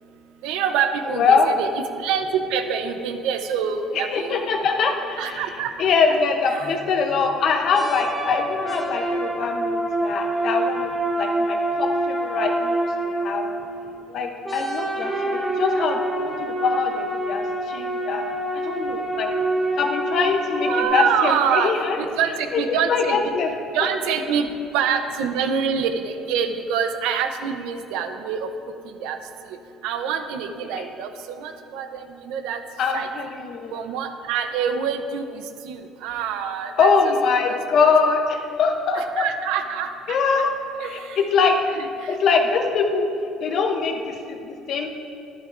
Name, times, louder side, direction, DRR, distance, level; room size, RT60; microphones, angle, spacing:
voice 1, 0.4-1.7 2.0-4.6 5.2-5.7 6.4-6.7 20.7-23.2 23.7-24.5 24.7-28.5 29.0-29.2 29.8-31.1 31.4-32.6 32.9-33.1 33.7-36.9 37.5-37.9 38.9-40.2 40.8-41.2 41.8-41.9, right 7 dB, 90° right, 7 dB, 0.7 m, -26 dB
voice 2, 1.0-1.5 3.9-5.5 5.8-13.5 14.1-18.3 18.5-19.3 19.8-22.0 22.5-23.5 30.8-30.9 32.8-33.8 36.8-39.3 40.1-40.5 40.8-41.5 42.1-43.1 43.4-44.9, left 5 dB, 45° left, 4 dB, 0.8 m, -23 dB
sound 1, 6.6-7.0 7.7-14.0 14.4-20.8, right 1 dB, 5° right, 0.9 m, -26 dB
12.0 x 11.0 x 2.6 m, 2.6 s
cardioid pair, 175°, 0 cm